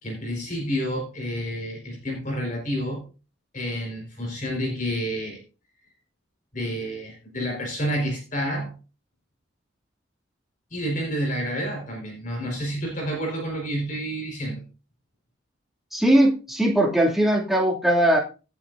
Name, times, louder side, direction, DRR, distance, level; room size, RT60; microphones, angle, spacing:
voice 1, 0.0-3.0 3.5-5.4 6.5-8.7 10.7-14.6, equal, 40° left, 0 dB, 4.7 m, -29 dB
voice 2, 15.9-18.2, right 1 dB, ahead, -2 dB, 2.6 m, -20 dB
17.0 x 9.0 x 2.7 m, 0.34 s
head